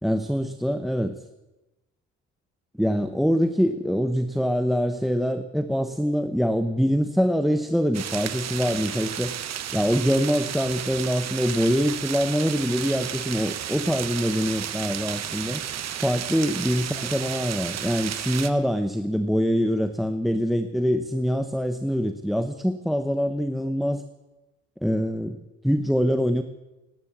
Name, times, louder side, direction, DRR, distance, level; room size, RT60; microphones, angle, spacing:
voice 1, 0.0-1.2 2.8-9.3 9.7-15.6 16.0-24.0 24.8-26.4, equal, ahead, 10 dB, 0.9 m, -24 dB
sound 1, 7.9-18.5, right 10 dB, 60° right, 1.1 m, -33 dB
18.0 x 10.5 x 7.3 m, 1.0 s
cardioid pair, 90°, 30 cm